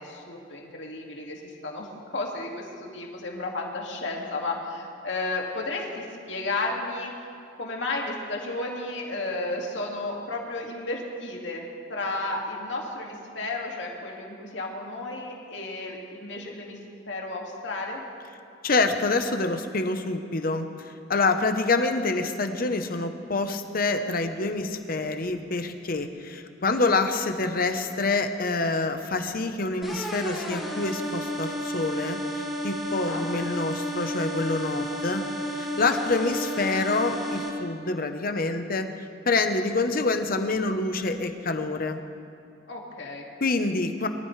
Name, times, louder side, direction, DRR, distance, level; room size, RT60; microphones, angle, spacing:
voice 1, 0.0-7.1 7.6-16.8 17.1-18.0 32.9-33.2 42.7-43.3, left 2 dB, 75° left, -1 dB, 2.3 m, -33 dB
voice 2, 18.6-35.2 35.5-38.9 39.3-42.0 43.4-44.1, left 3 dB, 50° left, 7 dB, 1.0 m, -26 dB
sound 1, 29.8-37.5, equal, ahead, 2.8 m, -32 dB
23.5 x 13.5 x 3.3 m, 2.6 s
head